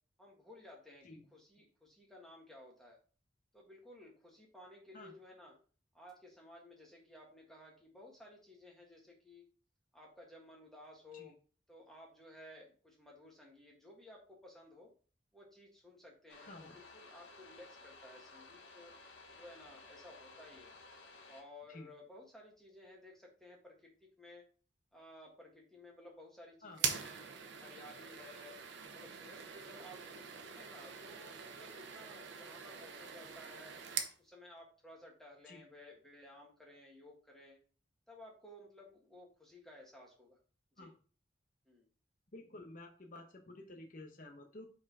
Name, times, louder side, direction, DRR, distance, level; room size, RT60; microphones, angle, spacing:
voice 1, 0.2-3.0 3.5-5.5 5.9-9.4 9.9-11.4 11.7-14.9 15.3-18.9 19.3-20.8 21.3-23.9 24.2-24.4 24.9-27.2 27.6-28.6 28.9-33.8 34.2-37.6 38.1-40.4 40.7-40.9 41.6-41.8, left 1 dB, ahead, -2 dB, 1.7 m, -56 dB
sound 1, 16.3-21.4, left 3 dB, 85° left, 1.1 m, -56 dB
sound 2, 26.7-34.2, right 7 dB, 80° right, 0.9 m, -43 dB
voice 2, 42.3-44.7, left 2 dB, 45° left, 4 dB, 0.9 m, -51 dB
5.0 x 4.3 x 4.8 m, 0.39 s
head